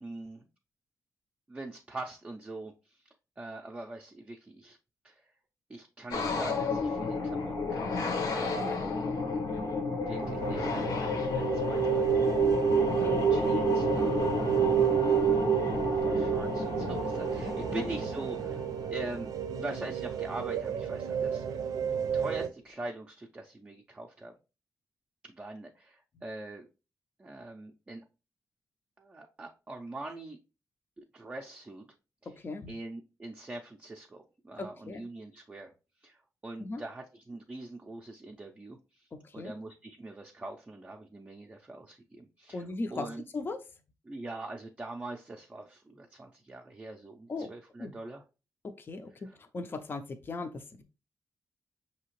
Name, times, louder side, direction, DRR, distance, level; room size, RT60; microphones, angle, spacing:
voice 1, 0.0-0.5 1.5-3.0 3.4-4.8 5.0-5.3 5.7-8.8 10.0-12.1 13.0-14.2 14.9-15.6 16.0-18.6 18.9-19.3 19.6-21.6 22.1-24.3 25.2-26.7 27.2-28.0 29.0-30.4 31.0-31.9 32.2-32.3 32.7-35.7 36.0-36.2 36.4-39.1 39.3-42.6 42.9-43.2 44.1-48.2 49.2-49.4, right 2 dB, 20° right, 2 dB, 0.4 m, -43 dB
sound 1, 6.1-19.1, left 4 dB, 85° left, 1.1 m, -32 dB
sound 2, 10.2-22.5, right 9 dB, 80° right, 0.5 m, -30 dB
voice 2, 17.5-17.8 32.4-32.7 34.6-35.0 36.6-36.8 39.2-39.5 42.5-43.6 47.3-47.5 47.8-47.9 48.8-49.1 49.4-50.8, left 3 dB, 35° left, 7 dB, 0.5 m, -38 dB
5.9 x 2.8 x 3.0 m, 0.31 s
wide cardioid pair, 135°, 6 cm